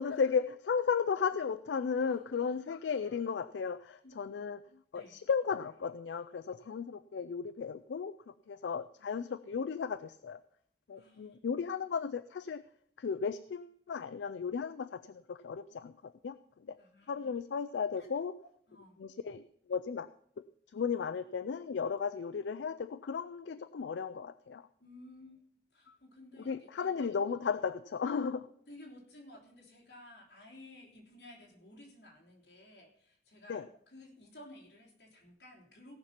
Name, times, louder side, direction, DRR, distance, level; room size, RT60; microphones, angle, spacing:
voice 1, 0.0-4.6 4.9-8.2 8.5-10.4 10.9-12.6 13.0-16.4 16.7-16.8 17.1-18.3 19.0-19.4 19.7-20.1 20.4-20.5 20.7-24.6 25.9-26.0 26.5-28.5 33.5-33.6, left 6 dB, 75° left, 13 dB, 0.4 m, -35 dB
voice 2, 2.0-2.6 4.0-4.2 4.9-5.2 10.9-11.4 16.8-17.3 18.0-18.1 18.7-19.0 24.8-25.4 25.7-26.9 28.7-36.0, left 1 dB, 60° left, -1 dB, 3.2 m, -55 dB
17.0 x 5.8 x 5.8 m, 0.66 s
head